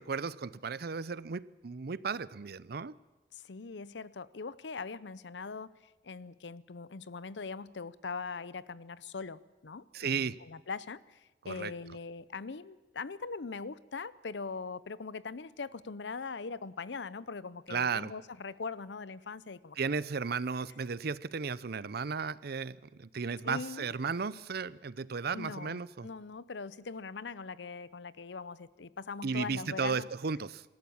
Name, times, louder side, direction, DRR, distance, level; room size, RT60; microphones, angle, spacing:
voice 1, 0.0-2.9 9.9-10.4 11.4-11.7 17.7-18.1 19.8-26.1 29.2-30.6, right 5 dB, 60° right, 18 dB, 0.6 m, -34 dB
voice 2, 3.3-5.7 6.0-19.9 20.6-20.7 23.4-23.9 25.3-30.1, left 4 dB, 85° left, 18 dB, 0.7 m, -41 dB
25.5 x 13.5 x 8.6 m, 1.2 s
head